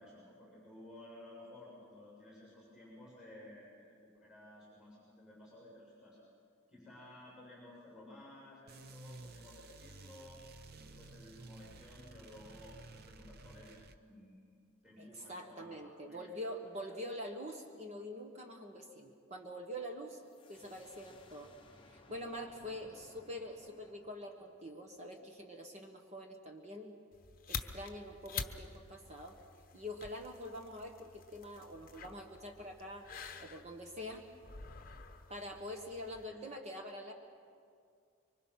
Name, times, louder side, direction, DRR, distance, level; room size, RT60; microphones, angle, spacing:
voice 1, 0.0-6.2 6.7-10.4 10.7-14.5 14.8-16.3 16.9-17.0 22.7-22.9 36.2-36.4, left 1 dB, 5° right, -6 dB, 7.0 m, -55 dB
sound 1, 8.7-14.0, right 3 dB, 45° right, 0.7 m, -54 dB
voice 2, 15.0-20.2 20.5-27.0 27.5-29.4 29.7-33.1 33.4-34.3 35.3-37.1, equal, 30° right, 3 dB, 1.3 m, -45 dB
sound 2, 20.2-25.7, left 2 dB, 25° left, 1.1 m, -62 dB
sound 3, 27.1-36.3, left 6 dB, 40° left, 1.0 m, -48 dB
25.0 x 24.0 x 5.8 m, 2.3 s
head